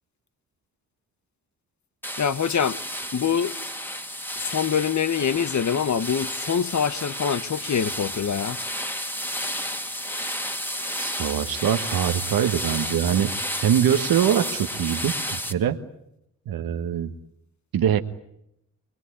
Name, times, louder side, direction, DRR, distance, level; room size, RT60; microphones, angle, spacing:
sound 1, 2.0-15.5, equal, 5° left, 2.2 m, -32 dB
voice 1, 2.2-2.8 3.1-3.5 4.4-8.6, left 7 dB, 55° left, 1.2 m, -24 dB
voice 2, 11.0-13.3 13.6-15.8 16.5-17.1 17.7-18.0, right 9 dB, 85° right, 1.4 m, -23 dB
23.5 x 21.5 x 9.8 m
cardioid pair, 50°, 35 cm